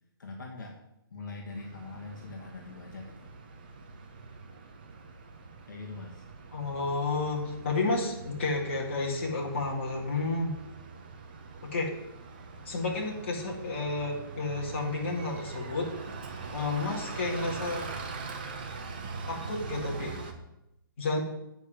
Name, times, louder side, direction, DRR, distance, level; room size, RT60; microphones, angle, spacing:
voice 1, 0.2-0.8 1.1-3.3 5.7-6.2, left 3 dB, 55° left, 0 dB, 1.4 m, -42 dB
Bus, 1.5-20.3, right 4 dB, 25° right, 0.7 m, -42 dB
voice 2, 6.5-10.6 11.6-12.0 12.7-15.9 16.5-18.0 19.3-20.2 21.0-21.2, left 3 dB, 30° left, -2 dB, 1.8 m, -31 dB
8.1 x 5.1 x 7.3 m, 0.86 s
hypercardioid pair, 180°, 12 cm